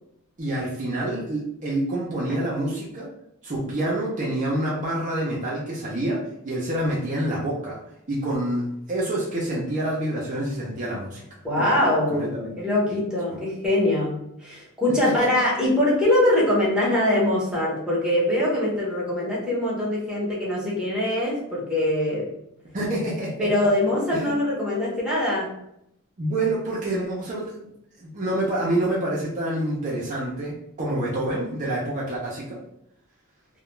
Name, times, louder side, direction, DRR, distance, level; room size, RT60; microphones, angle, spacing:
voice 1, 0.4-3.1 3.4-7.8 8.1-11.2 11.5-11.7 12.1-12.5 12.9-13.0 13.3-13.4 15.0-15.3 22.7-23.5 24.1-24.4 26.2-27.7 28.0-32.6, right 1 dB, 35° right, -5 dB, 0.5 m, -27 dB
voice 2, 11.4-12.3 12.6-22.3 23.4-25.5, left 1 dB, 5° right, -7 dB, 0.8 m, -23 dB
2.3 x 2.1 x 3.0 m, 0.78 s
head